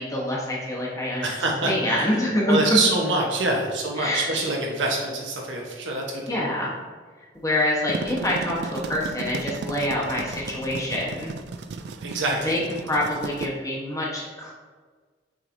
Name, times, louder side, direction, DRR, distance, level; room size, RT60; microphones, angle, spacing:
voice 1, 0.0-1.2 1.6-2.8 4.0-4.3 6.3-6.7 7.4-11.3 12.2-14.5, left 1 dB, 20° left, -5 dB, 1.0 m, -26 dB
voice 2, 1.2-2.1 2.5-6.4 12.0-12.6, right 2 dB, 90° right, -1 dB, 1.0 m, -25 dB
sound 1, 7.7-13.5, right 4 dB, 60° right, 0.3 m, -35 dB
6.1 x 3.2 x 2.6 m, 1.5 s
head